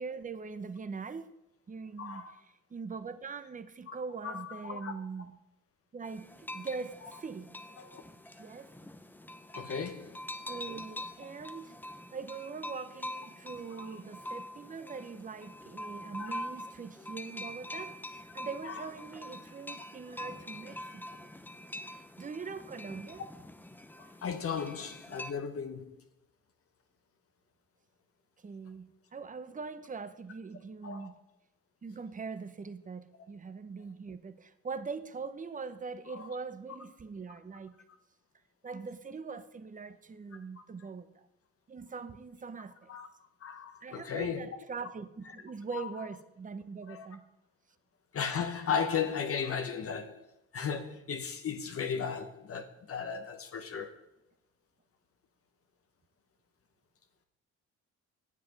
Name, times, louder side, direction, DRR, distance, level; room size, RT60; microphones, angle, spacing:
voice 1, 0.0-1.4 1.7-2.2 2.7-5.4 5.9-7.5 8.4-8.7 10.5-11.8 12.1-21.3 21.9-23.2 28.4-28.9 29.1-31.1 31.8-37.7 38.6-41.3 41.7-42.9 43.8-47.2, right 5 dB, 25° right, 0.8 m, -42 dB
voice 2, 2.0-2.3 3.9-4.0 4.2-4.9 7.8-8.0 9.5-10.2 13.8-13.9 16.2-16.5 18.6-18.8 24.0-26.0 30.8-31.1 36.1-36.3 42.9-43.1 43.4-44.6 45.7-45.9 46.9-47.1 48.1-50.2 50.5-54.0, left 6 dB, 50° left, 0.9 m, -36 dB
sound 1, 6.0-25.3, left 1 dB, 5° left, 0.6 m, -45 dB
9.6 x 7.5 x 5.2 m
cardioid pair, 90°, 30 cm